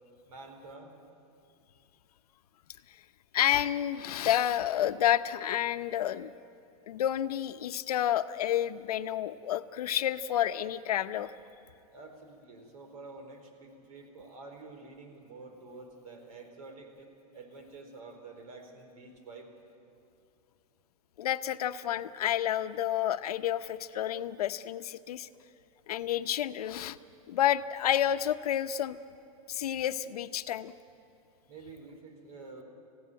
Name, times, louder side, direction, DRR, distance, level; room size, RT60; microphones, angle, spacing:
voice 1, 0.2-1.0 11.9-19.5 31.5-32.6, right 3 dB, 75° right, 4 dB, 4.3 m, -48 dB
voice 2, 3.3-6.3 6.9-11.3 21.2-25.3 25.9-27.0 27.3-29.0 29.5-30.7, left 11 dB, 90° left, 11 dB, 0.8 m, -30 dB
20.5 x 16.0 x 9.2 m, 2.8 s
supercardioid pair, 165°, 19 cm